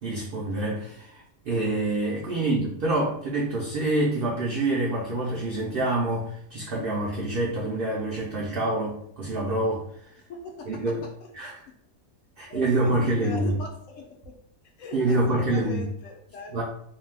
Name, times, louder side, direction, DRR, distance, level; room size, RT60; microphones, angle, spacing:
voice 1, 0.0-9.9 10.7-11.0 11.4-11.5 12.4-13.6 14.9-15.9 16.5-16.6, right 2 dB, 60° right, -3 dB, 0.6 m, -26 dB
voice 2, 10.3-11.7 12.4-14.4 14.8-16.6, left 2 dB, 70° left, 1 dB, 0.9 m, -41 dB
2.6 x 2.3 x 3.3 m, 0.67 s
omnidirectional pair, 1.5 m